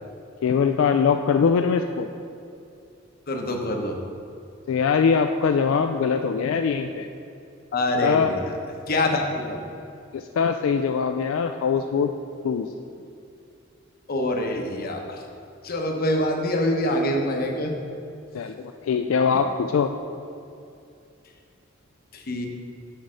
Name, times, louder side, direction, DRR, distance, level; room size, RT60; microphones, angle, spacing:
voice 1, 0.4-2.1 4.7-7.1 8.0-8.3 10.1-12.1 12.4-12.7 18.3-19.9, left 6 dB, 75° left, 6 dB, 0.3 m, -22 dB
voice 2, 3.3-4.0 7.7-8.5 8.9-9.6 14.1-15.2 15.6-17.7 22.1-22.5, left 1 dB, 50° left, 2 dB, 0.9 m, -25 dB
6.5 x 4.8 x 6.2 m, 2.6 s
head